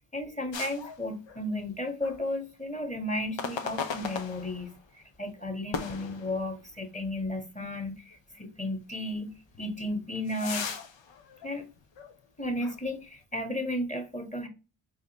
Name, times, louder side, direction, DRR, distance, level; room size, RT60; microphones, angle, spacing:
voice 1, 0.1-10.7 11.4-11.7 12.4-14.5, left 1 dB, 15° left, 1.5 m, -34 dB
sound 1, 0.5-1.7 2.0-2.2 3.4-4.9 5.7-6.9 7.3-7.4 8.1-8.2 9.5-12.2 12.6-12.8, left 6 dB, 65° left, 0.9 m, -38 dB
4.8 x 3.5 x 3.0 m
supercardioid pair, 40°, 49 cm